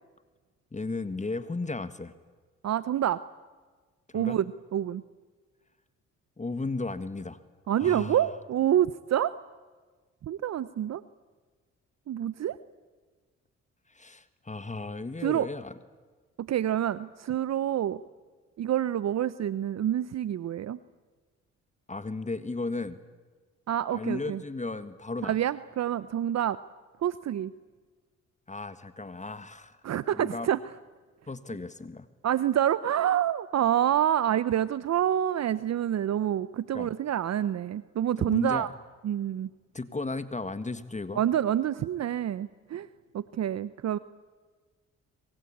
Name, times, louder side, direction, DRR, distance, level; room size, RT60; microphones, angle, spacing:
voice 1, 0.7-2.1 4.1-4.4 6.4-7.4 7.8-8.3 13.9-15.8 21.9-23.0 23.9-25.4 28.5-29.8 30.1-30.5 31.3-32.1 36.7-36.9 38.2-38.7 39.7-41.2, left 3 dB, 25° left, 12 dB, 1.7 m, -35 dB
voice 2, 2.6-3.2 4.1-4.4 4.7-5.0 7.7-9.3 10.2-11.0 12.1-12.6 15.2-15.5 16.4-18.0 18.6-20.8 23.7-24.4 25.2-26.6 27.0-27.5 29.8-30.6 32.2-38.7 39.0-39.5 41.1-42.9 43.1-44.0, right 10 dB, 60° right, 16 dB, 0.8 m, -27 dB
26.5 x 24.5 x 8.7 m, 1.4 s
supercardioid pair, 60°, 30 cm